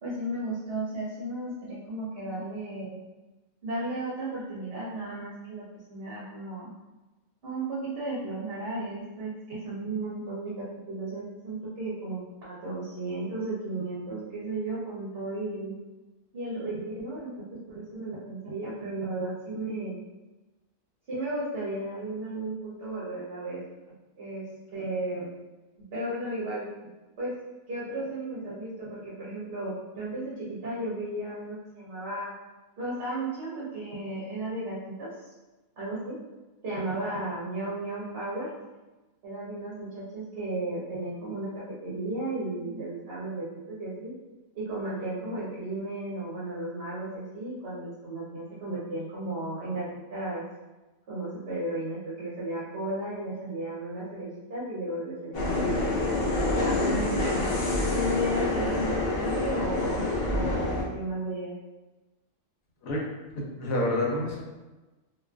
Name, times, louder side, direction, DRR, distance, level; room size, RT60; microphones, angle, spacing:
voice 1, 0.0-3.0 3.6-6.7 7.4-15.8 16.3-20.0 21.1-23.6 24.2-24.4 24.7-25.3 25.9-26.6 27.2-27.3 27.7-32.3 32.8-35.3 35.8-36.2 36.6-38.5 39.2-44.1 44.5-49.8 50.1-50.4 51.1-57.4 57.9-60.1 60.3-61.5, right 2 dB, 55° right, -8 dB, 0.7 m, -34 dB
sound 1, 55.3-60.8, left 2 dB, 60° left, 0.7 m, -27 dB
voice 2, 63.3-64.4, left 1 dB, 85° left, -3 dB, 1.1 m, -28 dB
2.4 x 2.4 x 2.2 m, 1.1 s
omnidirectional pair, 1.4 m